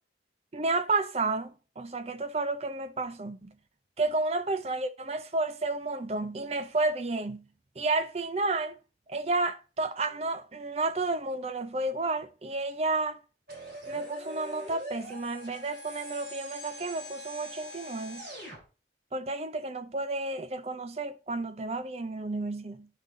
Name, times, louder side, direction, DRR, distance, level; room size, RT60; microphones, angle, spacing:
voice 1, 0.5-3.5 4.0-7.4 7.8-8.8 9.1-13.2 13.9-18.2 19.1-22.9, right 3 dB, 35° right, 0.6 m, -31 dB
sound 1, 13.5-18.6, equal, 60° right, 4.4 m, -42 dB
10.0 x 3.8 x 4.0 m
head